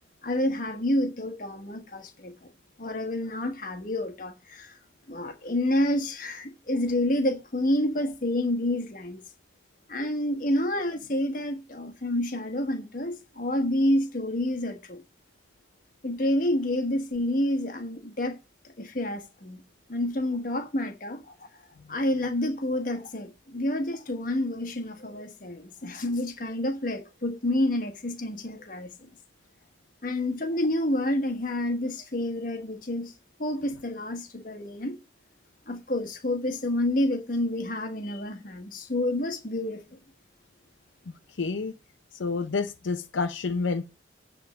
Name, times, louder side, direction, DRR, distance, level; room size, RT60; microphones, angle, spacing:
voice 1, 0.2-2.3 2.8-4.8 5.1-9.2 9.9-15.0 16.0-18.4 18.8-19.6 19.9-21.6 21.9-28.9 30.0-33.1 33.4-35.0 35.7-39.8, left 1 dB, 45° left, 1.2 m, -28 dB
voice 2, 41.4-41.7 42.1-43.8, left 4 dB, 80° left, 0.6 m, -29 dB
9.4 x 3.6 x 6.8 m
head